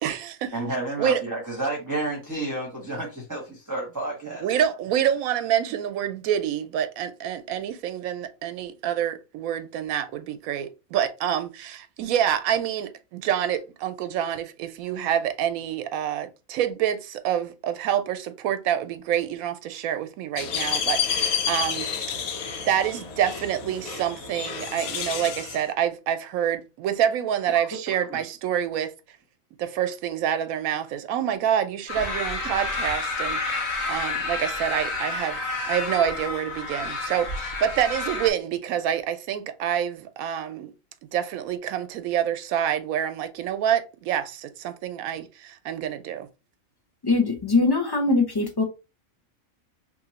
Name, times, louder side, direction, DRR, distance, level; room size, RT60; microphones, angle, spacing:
voice 1, 0.0-0.5 1.0-1.2 4.4-21.9 22.6-28.9 29.6-35.4 35.7-40.7 41.1-46.3, right 10 dB, 90° right, 1.0 m, -27 dB
voice 2, 0.5-4.5 27.5-27.7 27.9-28.2 32.0-32.2, right 2 dB, 15° right, 0.8 m, -31 dB
sound 1, 20.4-25.6, left 7 dB, 85° left, 1.2 m, -29 dB
sound 2, 31.9-38.3, left 3 dB, 55° left, 1.2 m, -30 dB
voice 3, 47.0-48.6, left 3 dB, 25° left, 0.6 m, -22 dB
3.0 x 2.5 x 4.0 m
omnidirectional pair, 1.4 m